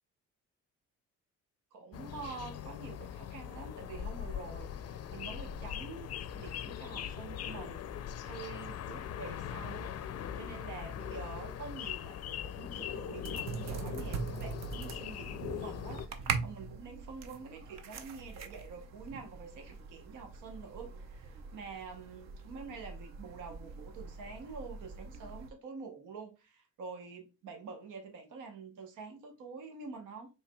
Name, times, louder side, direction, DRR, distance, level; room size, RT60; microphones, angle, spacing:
voice 1, 1.7-7.8 8.2-30.3, right 4 dB, 90° right, 1.0 m, -47 dB
sound 1, 1.9-16.1, left 9 dB, 55° left, 0.5 m, -41 dB
sound 2, 13.2-25.5, right 5 dB, 60° right, 0.7 m, -42 dB
4.6 x 3.2 x 2.3 m
cardioid pair, 90°, 30 cm